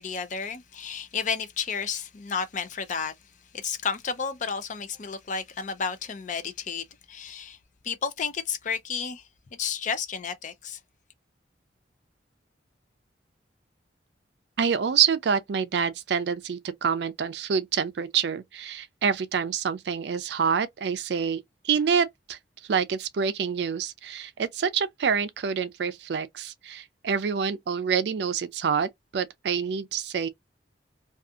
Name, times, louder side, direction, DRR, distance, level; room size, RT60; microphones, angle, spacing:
voice 1, 0.0-3.1 3.5-7.6 7.8-9.2 9.6-10.8, left 6 dB, 45° left, 0.5 m, -32 dB
voice 2, 14.6-22.4 22.7-30.3, right 6 dB, 65° right, 0.4 m, -27 dB
2.6 x 2.3 x 2.3 m
head